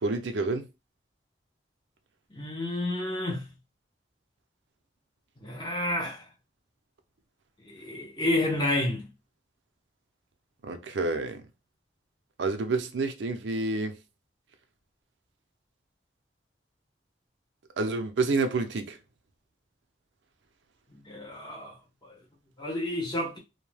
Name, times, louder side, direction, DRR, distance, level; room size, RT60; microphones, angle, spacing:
voice 1, 0.0-0.6 10.6-11.4 12.4-13.9 17.8-19.0, right 3 dB, 90° right, 0.5 m, -28 dB
voice 2, 2.3-3.5 5.4-6.3 7.6-9.1 20.9-21.8 22.0-22.1 22.6-23.4, left 1 dB, 25° left, 0.8 m, -30 dB
2.6 x 2.2 x 3.2 m
head